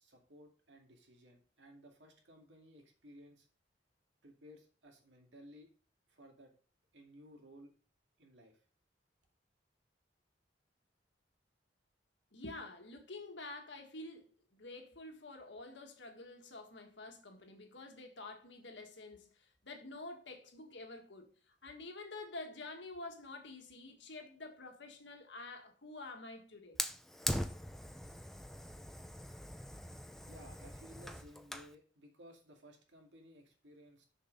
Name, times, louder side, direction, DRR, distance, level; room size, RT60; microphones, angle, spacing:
voice 1, 0.0-3.5 4.2-5.7 6.1-6.5 6.9-7.7 8.2-8.6 30.3-34.1, equal, 75° right, 2.2 m, -58 dB
voice 2, 12.3-14.2 14.5-26.8, left 2 dB, 70° left, 1.7 m, -49 dB
Fire, 26.8-31.7, equal, ahead, 0.6 m, -41 dB
6.9 x 6.0 x 5.2 m
head